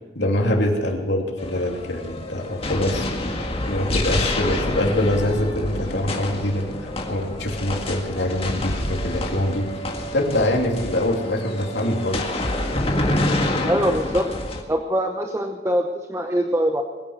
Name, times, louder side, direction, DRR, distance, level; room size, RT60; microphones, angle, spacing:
voice 1, 0.1-3.1 3.7-9.7 10.1-12.2, left 1 dB, 80° left, 1 dB, 3.0 m, -24 dB
sound 1, 1.4-14.6, left 1 dB, 35° left, 1.8 m, -27 dB
voice 2, 13.6-14.3 14.7-16.8, equal, 15° right, 4 dB, 0.9 m, -23 dB
21.0 x 9.9 x 6.6 m, 1.3 s
head